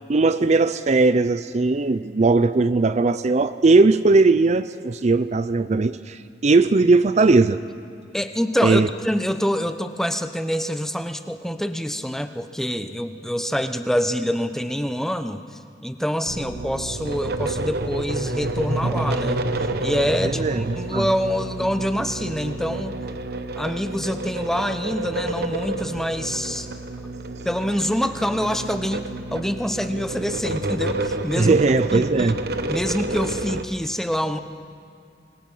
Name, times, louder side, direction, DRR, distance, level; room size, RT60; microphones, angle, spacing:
voice 1, 0.1-7.6 8.6-8.9 20.2-21.1 31.4-32.4, right 3 dB, 40° right, 12 dB, 0.5 m, -18 dB
voice 2, 8.1-15.4 15.8-19.4 19.8-23.0 23.6-26.7 27.4-31.5 31.9-32.3 32.7-34.4, equal, ahead, 9 dB, 0.8 m, -26 dB
sound 1, 16.3-33.6, right 2 dB, 60° right, 1.1 m, -29 dB
26.0 x 21.0 x 5.6 m, 2.4 s
head